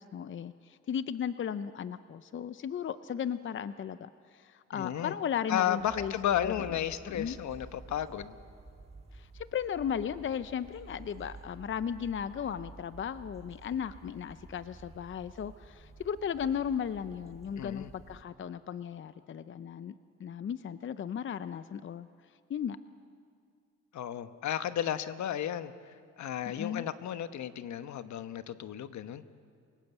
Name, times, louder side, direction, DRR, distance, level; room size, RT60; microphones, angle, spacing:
voice 1, 0.0-6.1 6.4-6.5 7.1-7.4 9.1-22.1 22.5-22.8 26.5-26.8, left 8 dB, 40° left, 13 dB, 0.6 m, -36 dB
voice 2, 4.7-5.1 5.5-8.4 17.6-17.9 23.9-29.2, left 10 dB, 70° left, 11 dB, 1.1 m, -33 dB
sound 1, 5.8-18.2, right 3 dB, 20° right, 1.9 m, -51 dB
28.5 x 18.0 x 8.1 m, 2.3 s
cardioid pair, 90°, 30 cm